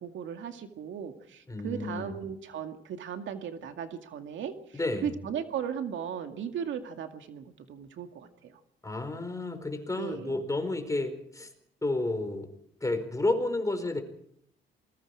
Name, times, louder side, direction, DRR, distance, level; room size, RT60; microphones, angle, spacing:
voice 1, 0.0-8.5 9.9-10.4, right 8 dB, 75° right, 6 dB, 2.2 m, -37 dB
voice 2, 1.5-2.1 4.7-5.1 8.8-11.5 11.8-12.5 12.8-14.0, left 2 dB, 15° left, 8 dB, 4.7 m, -31 dB
27.5 x 21.5 x 4.9 m, 0.68 s
cardioid pair, 90°, 20 cm